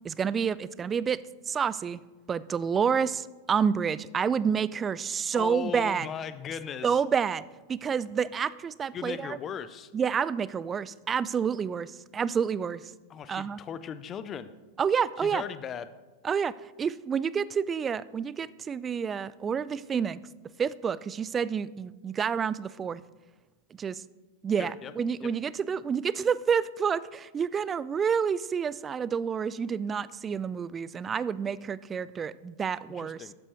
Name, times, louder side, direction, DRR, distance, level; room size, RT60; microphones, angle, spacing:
voice 1, 0.0-2.0 2.3-6.1 6.8-7.4 7.7-9.4 9.9-12.9 13.3-13.6 14.8-15.4 16.2-20.2 20.6-23.0 23.8-24.0 24.4-33.2, right 7 dB, 20° right, 19 dB, 0.3 m, -29 dB
voice 2, 5.3-7.0 8.9-9.9 13.1-14.5 15.2-15.9 24.6-24.9 25.2-25.3 32.9-33.3, left 8 dB, 25° left, 13 dB, 0.6 m, -38 dB
13.0 x 9.7 x 3.1 m, 1.2 s
figure-of-eight pair, 90°, 0 cm